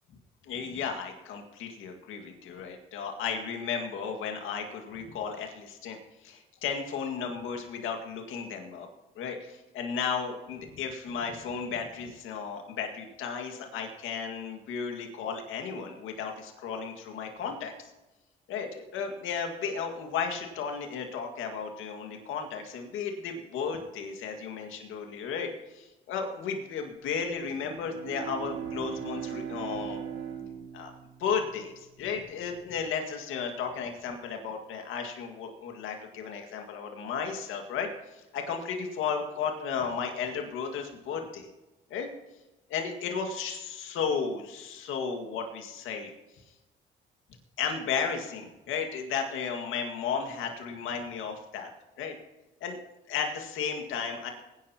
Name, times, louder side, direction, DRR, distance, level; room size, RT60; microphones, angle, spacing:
voice 1, 0.5-6.0 6.2-8.9 9.2-17.7 18.5-30.0 30.7-30.9 31.2-41.5 41.9-42.1 42.7-46.1 47.6-51.7 52.0-52.2 52.6-52.8 53.1-54.3, left 6 dB, 90° left, 4 dB, 2.0 m, -34 dB
Bowed string instrument, 27.4-32.0, right 9 dB, 80° right, 5.3 m, -39 dB
22.0 x 10.5 x 2.9 m, 1.0 s
cardioid pair, 90°, 20 cm